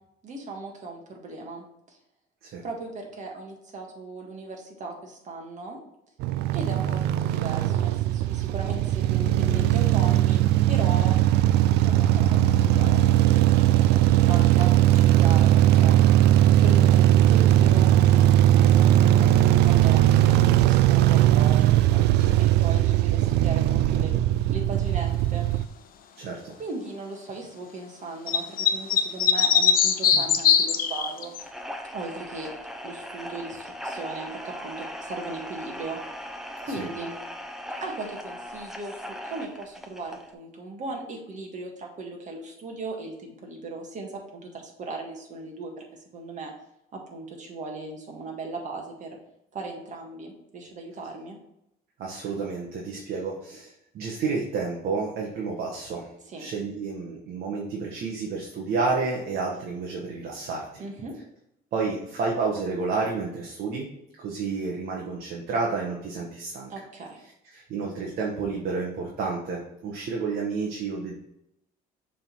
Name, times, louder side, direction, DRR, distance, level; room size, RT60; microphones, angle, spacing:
voice 1, 0.2-2.0 2.6-5.8 6.5-11.1 11.8-16.0 16.6-24.1 24.5-25.5 26.6-31.3 31.9-32.5 32.8-36.0 36.6-37.2 37.8-45.8 46.1-46.5 46.9-49.2 49.5-51.4 56.3-56.5 60.8-61.2 66.7-67.2, right 3 dB, 45° right, 1 dB, 1.8 m, -37 dB
sound 1, 6.2-25.7, right 13 dB, 80° right, 0.4 m, -19 dB
voice 2, 22.2-22.6 26.2-26.5 30.1-30.3 36.7-36.9 52.0-56.1 56.4-60.8 61.7-63.9 64.2-66.7 67.5-71.1, right 4 dB, 65° right, -2 dB, 1.4 m, -30 dB
sound 2, 28.3-31.4, left 8 dB, 60° left, 0.8 m, -20 dB
sound 3, 31.4-40.3, equal, 5° right, 0.7 m, -39 dB
6.8 x 3.8 x 4.6 m, 0.81 s
cardioid pair, 110°, 17 cm